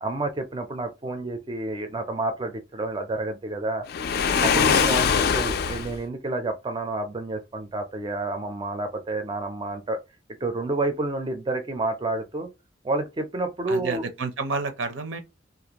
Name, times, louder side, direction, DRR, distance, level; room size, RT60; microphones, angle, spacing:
voice 1, 0.0-3.9 4.4-10.0 10.4-12.5 12.8-14.0, right 2 dB, 25° right, 0.4 m, -29 dB
Waves surf, 3.9-6.0, left 6 dB, 55° left, 0.3 m, -22 dB
voice 2, 13.7-15.2, right 4 dB, 80° right, 0.6 m, -30 dB
2.4 x 2.1 x 2.8 m
head